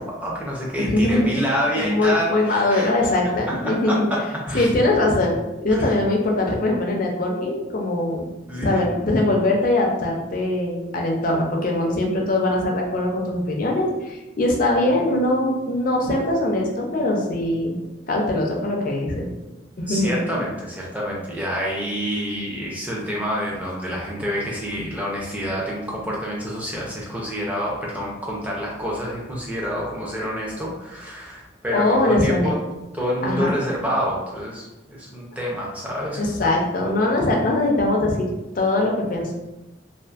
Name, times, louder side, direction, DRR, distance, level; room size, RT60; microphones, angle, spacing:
voice 1, 0.0-4.7 5.7-5.9 8.5-8.8 19.9-32.6 32.9-36.2, equal, 10° right, -4 dB, 0.5 m, -28 dB
voice 2, 0.8-1.3 1.8-4.1 4.5-5.4 5.6-8.2 8.6-17.8 18.1-19.3 19.8-20.1 31.7-32.5 33.2-33.5 36.2-38.3 38.5-39.3, left 2 dB, 45° left, 0 dB, 0.4 m, -21 dB
2.5 x 2.4 x 2.3 m, 1.0 s
head